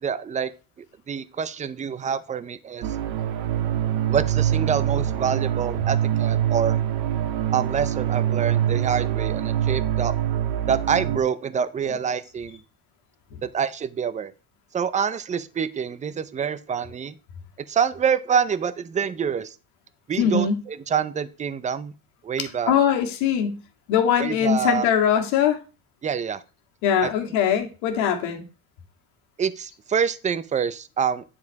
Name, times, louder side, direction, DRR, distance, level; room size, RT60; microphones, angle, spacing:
voice 1, 0.0-0.5 1.1-2.9 4.1-6.8 7.5-10.1 10.7-12.6 13.4-14.3 14.7-17.1 17.7-19.6 20.1-21.9 22.2-22.8 24.2-24.9 26.0-26.4 27.0-27.1 29.4-31.2, right 7 dB, 15° right, 15 dB, 0.5 m, -26 dB
sound 1, 2.8-11.2, right 11 dB, 85° right, 1.3 m, -24 dB
voice 2, 20.2-20.6 22.7-23.6 23.9-25.6 26.8-28.4, left 8 dB, 85° left, 4 dB, 2.0 m, -21 dB
9.8 x 4.9 x 4.6 m, 0.32 s
cardioid pair, 130°, 46 cm